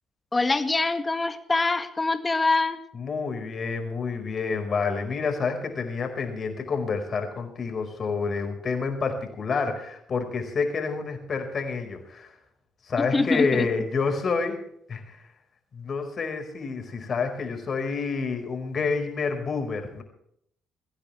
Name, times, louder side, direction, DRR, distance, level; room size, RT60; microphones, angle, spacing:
voice 1, 0.3-2.8 13.0-13.7, left 3 dB, 25° left, 9 dB, 2.0 m, -24 dB
voice 2, 2.9-12.3 12.8-14.6 14.9-15.3 15.7-20.0, left 5 dB, 45° left, 5 dB, 4.9 m, -28 dB
22.0 x 15.5 x 3.4 m, 0.70 s
hypercardioid pair, 50°, 0 cm